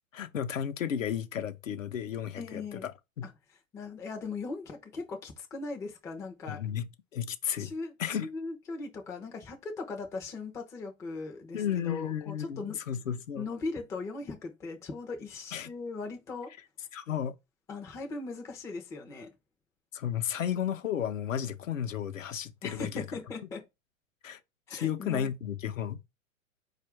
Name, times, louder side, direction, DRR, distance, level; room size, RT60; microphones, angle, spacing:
voice 1, 0.1-2.9 3.2-3.3 6.5-7.7 8.0-8.3 11.5-13.5 15.5-15.7 16.9-17.3 19.9-23.0 24.2-24.4 24.7-26.1, left 9 dB, 75° left, 0.7 m, -33 dB
voice 2, 2.4-2.9 3.2-3.3 3.7-6.6 7.6-7.9 8.2-12.8 13.4-16.5 17.7-19.3 22.6-23.6 24.7-25.3, left 3 dB, 10° left, 0.4 m, -39 dB
4.5 x 2.4 x 4.4 m
figure-of-eight pair, 105°, 40 cm